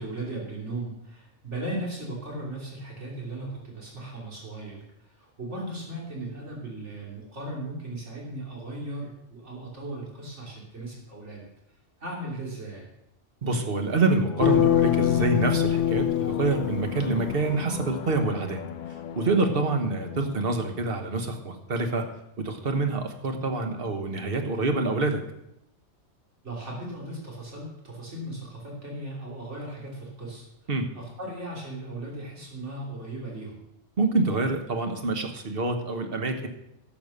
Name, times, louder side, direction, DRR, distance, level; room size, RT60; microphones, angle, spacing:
voice 1, 0.0-11.5 12.0-12.9 26.4-30.4 30.9-33.6, right 1 dB, 70° right, -3 dB, 3.4 m, -37 dB
voice 2, 13.4-18.6 19.2-22.0 22.4-25.2 30.7-30.9 34.0-36.5, right 3 dB, 50° right, 5 dB, 1.4 m, -26 dB
sound 1, 14.2-21.6, left 8 dB, 60° left, 0.5 m, -37 dB
sound 2, 14.4-17.4, left 11 dB, 75° left, 1.0 m, -24 dB
11.5 x 7.3 x 6.7 m, 0.86 s
omnidirectional pair, 1.3 m